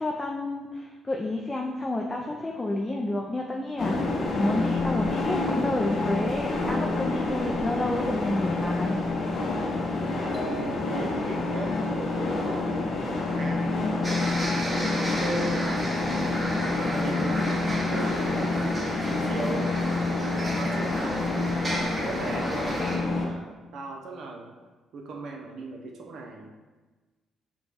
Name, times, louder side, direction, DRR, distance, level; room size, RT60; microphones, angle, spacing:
voice 1, 0.0-9.0, left 1 dB, 20° left, 0 dB, 0.4 m, -30 dB
sound 1, 3.8-23.3, left 3 dB, 60° left, 0.6 m, -28 dB
voice 2, 10.1-14.0 14.6-16.0 16.8-19.7 20.2-21.2 21.6-24.5 24.9-26.5, right 2 dB, 70° right, 2 dB, 0.6 m, -37 dB
sound 2, 10.3-11.5, right 3 dB, 10° right, 1.3 m, -41 dB
sound 3, 14.0-23.0, right 1 dB, 25° right, 1.0 m, -33 dB
5.1 x 2.3 x 3.3 m, 1.2 s
cardioid pair, 90°, 0 cm